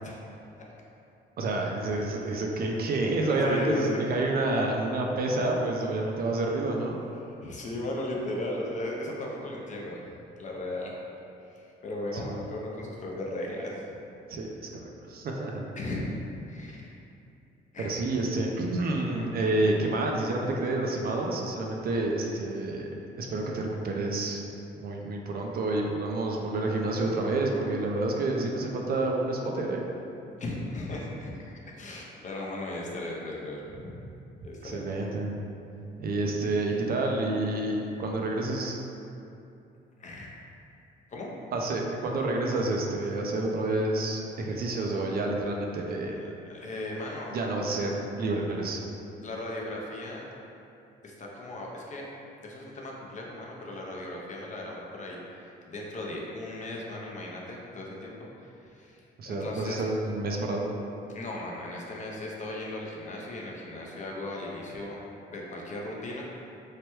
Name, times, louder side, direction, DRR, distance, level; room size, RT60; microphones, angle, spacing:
voice 1, 1.4-7.0 12.1-12.4 14.3-14.7 15.1-15.7 17.8-22.9 23.2-24.4 24.8-29.8 34.6-35.4 36.0-38.8 41.5-46.1 47.3-48.8 59.2-60.7, right 2 dB, 50° right, 0 dB, 0.4 m, -29 dB
voice 2, 3.4-4.0 7.3-10.9 11.4-13.8 15.8-16.2 16.5-16.9 17.7-17.9 30.4-34.1 34.4-35.1 40.0-40.3 41.1-41.3 46.0-47.4 49.2-50.2 51.0-52.0 52.4-59.8 61.1-65.0 65.3-66.2, left 1 dB, 40° left, -2 dB, 0.5 m, -37 dB
3.2 x 2.2 x 2.9 m, 2.8 s
cardioid pair, 90°, 20 cm